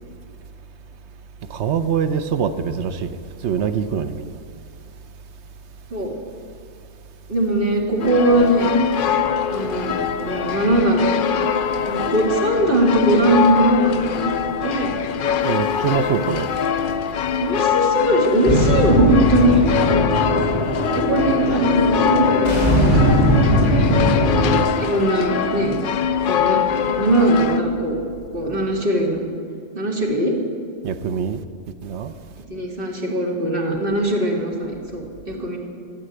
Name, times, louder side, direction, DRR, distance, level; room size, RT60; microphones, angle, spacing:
voice 1, 1.5-3.2 3.4-4.4 15.4-16.5 30.8-31.4 31.8-32.1, right 7 dB, 70° right, 1.0 m, -24 dB
voice 2, 7.3-8.7 9.5-10.0 10.2-11.1 11.8-14.3 14.6-14.9 17.4-19.6 20.9-23.2 23.5-24.0 24.8-25.8 26.2-26.6 27.0-28.0 28.3-29.3 29.7-30.4 32.5-35.6, right 1 dB, 50° right, 2.1 m, -20 dB
sound 1, 8.0-27.6, left 8 dB, 60° left, 0.6 m, -23 dB
sound 2, 18.5-24.6, equal, 25° left, 2.4 m, -19 dB
13.0 x 8.7 x 7.9 m
omnidirectional pair, 1.2 m